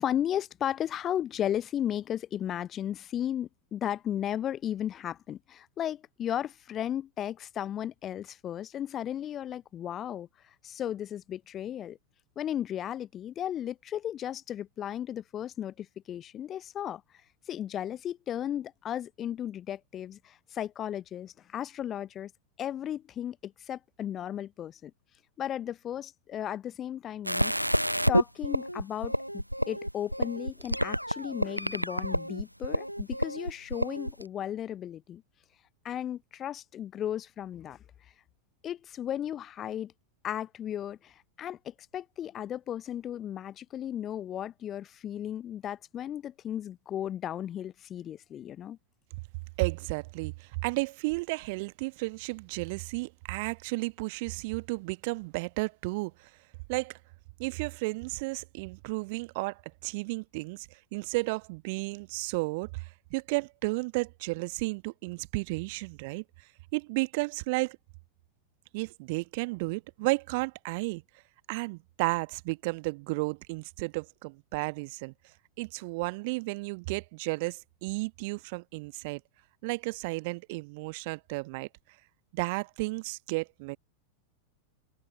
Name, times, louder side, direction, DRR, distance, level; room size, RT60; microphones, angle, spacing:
voice 1, 0.0-10.3 10.6-12.0 12.4-17.0 17.5-22.3 22.6-24.9 25.4-27.5 28.1-35.2 35.8-37.8 38.6-39.9 40.2-48.8, left 10 dB, 30° left, 0.6 m, -35 dB
sound 1, 27.3-34.2, equal, 90° right, 0.6 m, -29 dB
voice 2, 49.6-56.3 56.7-57.0 57.4-66.2 66.7-67.8 68.7-71.0 71.5-75.1 75.6-79.2 79.6-81.7 82.3-83.8, right 26 dB, 50° right, 1.2 m, -33 dB
figure-of-eight pair, 90°, 0 cm